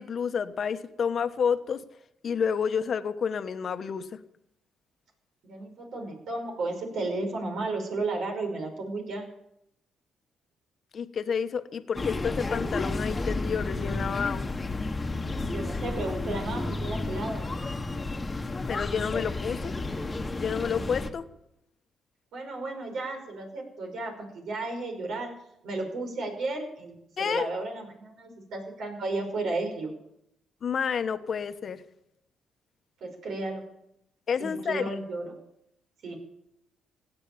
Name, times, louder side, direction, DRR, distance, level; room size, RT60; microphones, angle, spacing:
voice 1, 0.0-1.8 2.2-4.2 10.9-14.5 18.7-19.7 20.4-21.2 27.2-27.5 30.6-31.8 34.3-34.9, left 6 dB, 50° left, 10 dB, 1.1 m, -29 dB
voice 2, 5.4-9.3 15.4-17.5 22.3-25.3 25.6-29.9 33.0-33.6 34.4-35.4 36.0-36.2, right 2 dB, 70° right, 4 dB, 5.6 m, -33 dB
sound 1, 11.9-21.1, left 2 dB, 25° left, 1.4 m, -32 dB
17.0 x 9.0 x 8.7 m, 0.79 s
cardioid pair, 90°, 0 cm